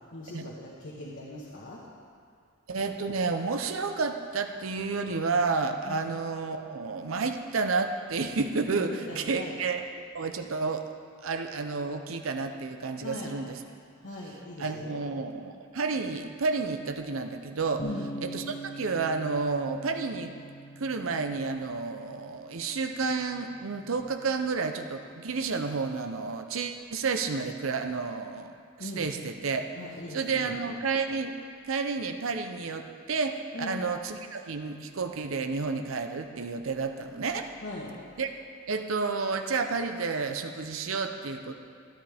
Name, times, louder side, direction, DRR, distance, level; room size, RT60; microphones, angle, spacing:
voice 1, 0.1-1.8 5.8-6.0 8.9-9.5 13.0-13.3 14.0-15.0 17.8-18.1 28.8-29.1 29.7-30.5 33.5-33.8 37.6-37.9, left 1 dB, 65° left, -5 dB, 1.4 m, -39 dB
voice 2, 2.7-9.9 10.1-10.9 11.2-13.6 14.6-17.8 18.2-20.3 20.8-29.7 30.1-31.3 31.6-37.5 38.2-38.3 38.7-41.6, right 4 dB, 75° right, 6 dB, 0.7 m, -31 dB
Bass guitar, 17.8-24.0, right 1 dB, 30° left, 1.1 m, -44 dB
13.0 x 12.5 x 3.5 m, 2.2 s
head